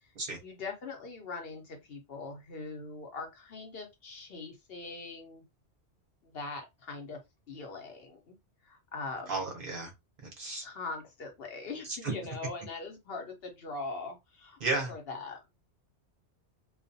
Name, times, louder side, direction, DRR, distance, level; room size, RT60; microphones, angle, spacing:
voice 1, 0.4-5.4 6.2-7.2 7.5-8.4 8.6-9.5 10.6-14.6 14.9-15.5, left 3 dB, 60° left, 0.9 m, -41 dB
voice 2, 9.3-9.9 10.2-10.7 12.0-12.1 14.6-14.9, right 3 dB, 55° right, 0.7 m, -33 dB
2.4 x 2.2 x 2.6 m
omnidirectional pair, 1.2 m